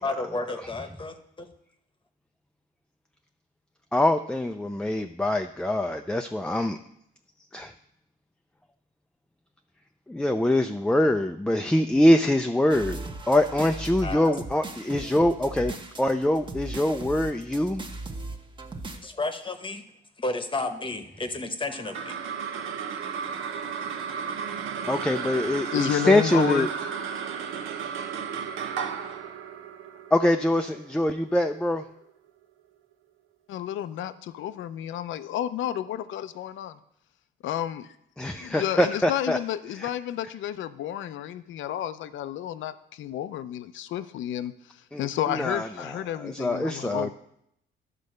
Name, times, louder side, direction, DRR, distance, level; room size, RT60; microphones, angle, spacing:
voice 1, 0.0-1.5 14.0-14.3 18.9-19.8 20.2-22.2, left 2 dB, 25° left, 7 dB, 1.0 m, -32 dB
voice 2, 3.9-6.8 7.5-7.7 10.1-17.8 24.9-26.7 30.1-31.8 38.2-39.4 39.8-39.9 44.9-47.1, left 1 dB, 5° left, 6 dB, 0.4 m, -24 dB
sound 1, 12.7-19.0, right 2 dB, 25° right, 1.0 m, -38 dB
sound 2, 21.7-32.3, right 7 dB, 90° right, 0.9 m, -34 dB
voice 3, 25.7-26.7 33.5-36.8 37.4-38.0 38.3-47.1, left 11 dB, 75° left, 13 dB, 0.5 m, -31 dB
11.0 x 4.1 x 6.5 m, 0.75 s
cardioid pair, 90°, 20 cm